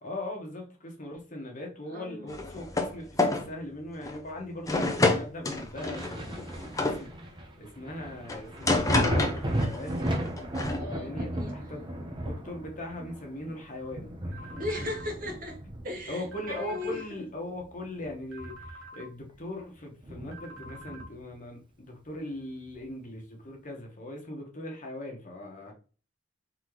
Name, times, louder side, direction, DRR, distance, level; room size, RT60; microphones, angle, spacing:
voice 1, 0.0-10.0 10.8-14.7 16.1-25.7, left 1 dB, 45° left, 1.2 m, -40 dB
voice 2, 1.9-2.4 10.7-11.6 14.5-17.0 25.6-25.7, left 2 dB, 50° right, 1.9 m, -38 dB
sound 1, 2.3-2.9 3.2-3.5 4.0-4.2 4.7-7.0 8.3-9.8 10.1-10.8, left 2 dB, 20° left, 0.6 m, -28 dB
Thunder, 5.7-17.1 17.5-19.0 19.4-19.5 20.0-21.3 22.7-22.8, right 1 dB, 25° right, 0.9 m, -35 dB
sound 2, 14.3-15.1 16.3-17.1 18.3-19.1 20.3-21.1, right 1 dB, 80° right, 1.4 m, -47 dB
4.0 x 3.9 x 3.1 m
head